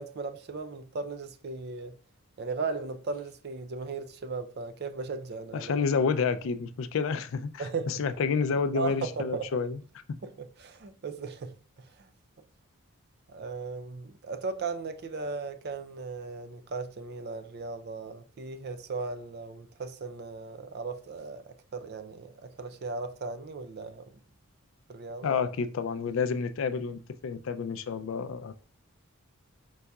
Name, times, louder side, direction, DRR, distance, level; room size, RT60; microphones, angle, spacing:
voice 1, 0.0-1.9 2.4-5.7 7.6-8.0 8.7-9.6 10.2-12.1 13.3-24.1 24.9-25.4, right 4 dB, 50° right, 0.4 m, -37 dB
voice 2, 5.5-9.8 25.2-28.5, left 5 dB, 60° left, 0.4 m, -29 dB
4.6 x 4.0 x 2.3 m
head